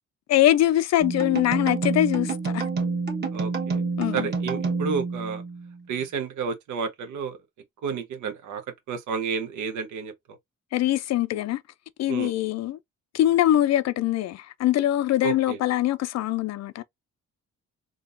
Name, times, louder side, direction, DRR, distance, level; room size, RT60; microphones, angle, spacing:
voice 1, 0.3-2.6 4.0-4.3 10.7-11.6 12.0-12.8 13.1-16.8, left 13 dB, 60° left, 0.4 m, -23 dB
sound 1, 1.0-5.8, right 4 dB, 35° right, 1.2 m, -28 dB
voice 2, 3.3-3.8 4.1-5.4 5.9-7.4 7.8-8.6 8.9-10.1 12.1-12.3 15.2-15.6, right 6 dB, 75° right, 0.9 m, -31 dB
3.8 x 2.4 x 2.5 m
cardioid pair, 90°, 30 cm